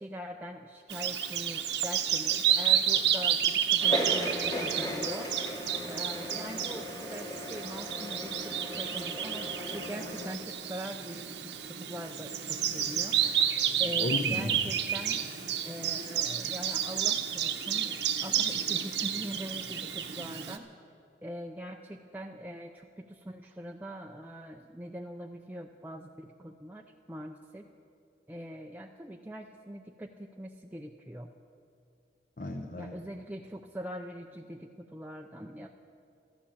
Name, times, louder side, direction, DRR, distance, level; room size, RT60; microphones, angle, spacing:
voice 1, 0.0-5.3 5.8-13.2 13.8-15.2 15.6-20.7 21.2-27.7 28.3-31.3 32.8-35.7, equal, 10° right, 1 dB, 0.5 m, -42 dB
Bird vocalization bird call bird song, 0.9-20.6, right 9 dB, 80° right, 1.0 m, -31 dB
sound 1, 3.8-10.3, equal, 20° left, 1.3 m, -37 dB
voice 2, 13.2-14.6 32.4-32.9, left 2 dB, 45° left, 3 dB, 0.9 m, -36 dB
14.0 x 13.0 x 7.2 m, 2.6 s
head